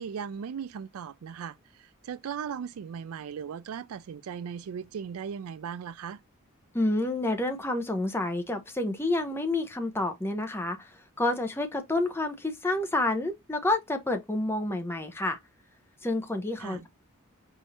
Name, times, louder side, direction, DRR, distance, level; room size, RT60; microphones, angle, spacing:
voice 1, 0.0-6.2 16.6-16.9, right 7 dB, 90° right, 0.4 m, -38 dB
voice 2, 6.7-15.4 16.0-16.9, left 2 dB, 10° left, 0.8 m, -29 dB
4.9 x 2.6 x 4.1 m
head